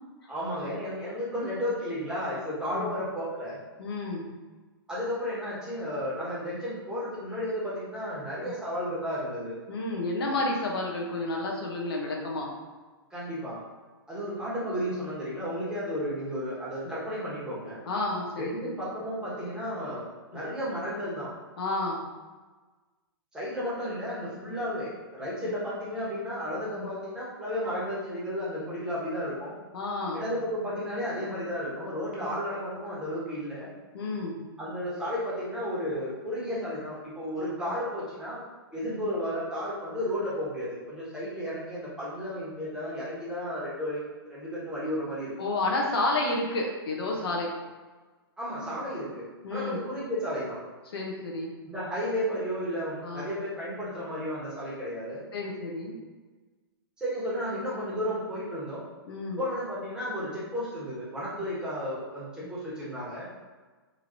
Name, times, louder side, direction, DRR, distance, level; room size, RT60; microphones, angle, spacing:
voice 1, 0.3-3.6 4.9-9.6 13.1-13.6 14.1-17.9 18.4-20.0 20.3-21.3 23.3-29.6 30.1-33.7 34.6-38.4 38.7-44.0 44.3-45.6 48.4-50.6 51.7-55.2 57.0-58.8 59.4-63.3, equal, 5° right, -9 dB, 1.1 m, -33 dB
voice 2, 3.8-4.3 8.5-8.6 9.7-12.5 17.9-18.8 20.3-20.4 21.6-22.0 24.4-24.6 26.8-26.9 29.7-30.2 32.2-32.3 33.9-34.4 37.6-37.8 38.8-39.0 45.4-47.5 49.4-49.8 50.9-51.5 53.0-53.3 55.3-56.0 59.1-59.4 61.4-61.5 62.4-62.5, left 2 dB, 70° left, -1 dB, 0.8 m, -31 dB
3.0 x 2.8 x 2.5 m, 1.3 s
hypercardioid pair, 125°, 13 cm